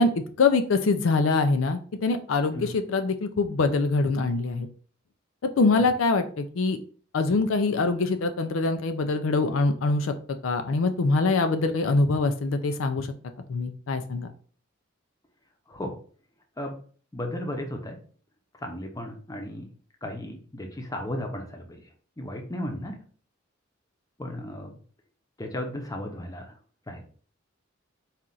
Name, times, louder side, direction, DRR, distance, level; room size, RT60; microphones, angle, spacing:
voice 1, 0.0-4.7 5.4-6.8 7.1-10.1 10.4-13.1 13.5-14.3, left 3 dB, 80° left, 8 dB, 0.4 m, -24 dB
voice 2, 17.1-17.9 18.6-19.7 20.0-21.8 22.2-23.0 24.2-24.8 25.4-26.5 26.9-27.0, left 1 dB, 20° left, 3 dB, 0.7 m, -35 dB
4.3 x 2.4 x 3.8 m, 0.44 s
head